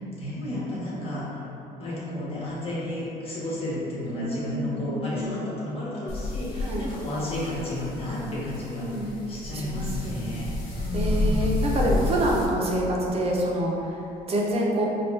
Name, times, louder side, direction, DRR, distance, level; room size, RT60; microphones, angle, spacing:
voice 1, 0.2-1.4 1.8-11.8, left 1 dB, 35° left, -7 dB, 1.2 m, -32 dB
voice 2, 4.1-5.4 6.7-6.8 8.8-9.2 9.5-9.8 10.2-10.5 10.9-13.7 14.3-14.9, right 1 dB, 35° right, -3 dB, 0.7 m, -27 dB
sound 1, 6.1-12.4, left 2 dB, 60° left, 0.7 m, -30 dB
4.5 x 2.5 x 3.2 m, 3.0 s
cardioid pair, 110°, 17 cm